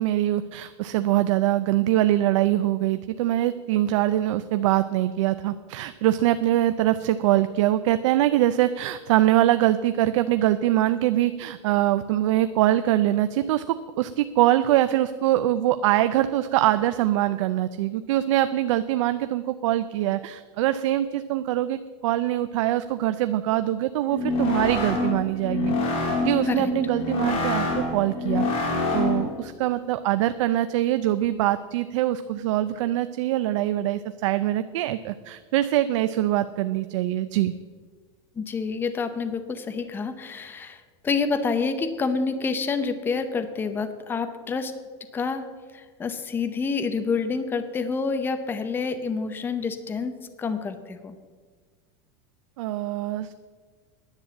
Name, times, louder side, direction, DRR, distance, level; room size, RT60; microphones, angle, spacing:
voice 1, 0.0-25.7 26.2-37.5 52.6-53.3, right 14 dB, 75° right, 11 dB, 0.5 m, -23 dB
sound 1, 24.1-29.4, left 2 dB, 35° left, 2.5 m, -26 dB
voice 2, 38.4-44.7 45.1-45.4 45.7-51.2, left 4 dB, 15° left, 9 dB, 0.7 m, -28 dB
10.5 x 8.9 x 7.7 m, 1.5 s
supercardioid pair, 160°, 16 cm